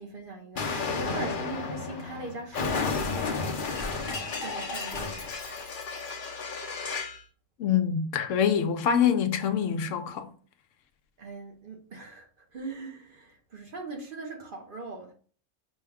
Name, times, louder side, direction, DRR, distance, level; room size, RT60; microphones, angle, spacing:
voice 1, 0.0-5.3 11.2-12.3 12.5-15.1, right 3 dB, 45° right, 1.0 m, -41 dB
Explosion, 0.6-7.2, left 4 dB, 50° left, 0.8 m, -32 dB
voice 2, 7.6-10.3, left 8 dB, 75° left, 0.9 m, -25 dB
5.3 x 2.3 x 3.5 m
omnidirectional pair, 1.3 m